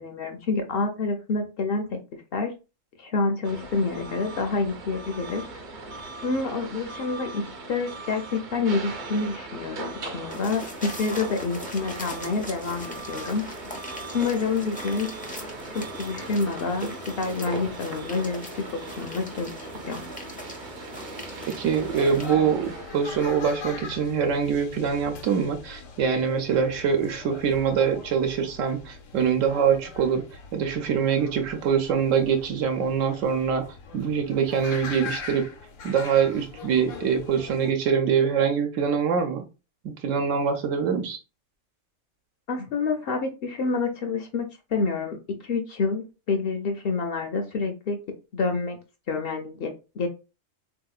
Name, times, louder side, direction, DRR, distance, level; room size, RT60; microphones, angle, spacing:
voice 1, 0.0-2.0 2.3-2.5 3.0-5.4 6.2-7.4 7.7-13.4 14.1-15.1 15.7-19.5 19.9-20.0 42.5-45.2 45.4-48.0 48.3-48.8 49.1-50.1, left 4 dB, 60° left, 5 dB, 0.7 m, -28 dB
sound 1, 3.4-23.3, right 2 dB, 50° right, 0.6 m, -39 dB
sound 2, 10.3-22.3, equal, 10° left, 0.4 m, -40 dB
voice 2, 21.5-30.2 30.5-35.5 35.8-39.4 39.8-41.2, right 7 dB, 85° right, 5 dB, 1.0 m, -24 dB
sound 3, 21.6-37.7, left 4 dB, 90° left, 1.1 m, -41 dB
3.6 x 2.8 x 2.3 m, 0.30 s
omnidirectional pair, 1.3 m